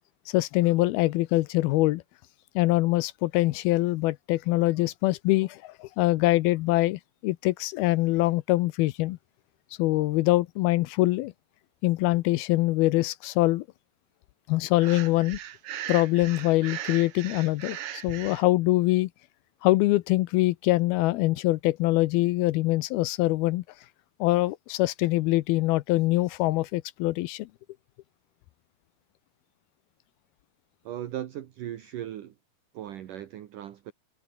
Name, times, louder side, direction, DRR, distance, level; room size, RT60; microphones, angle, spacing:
voice 1, 0.3-2.0 2.6-9.2 9.8-11.3 11.8-13.7 14.5-15.4 15.9-19.1 19.6-23.6 24.2-27.5, left 18 dB, 85° left, 2.6 m, -24 dB
Breathing, 14.8-18.4, right 11 dB, 85° right, 1.2 m, -38 dB
voice 2, 30.8-32.4 32.7-33.9, right 12 dB, 65° right, 2.7 m, -37 dB
omnidirectional pair, 4.4 m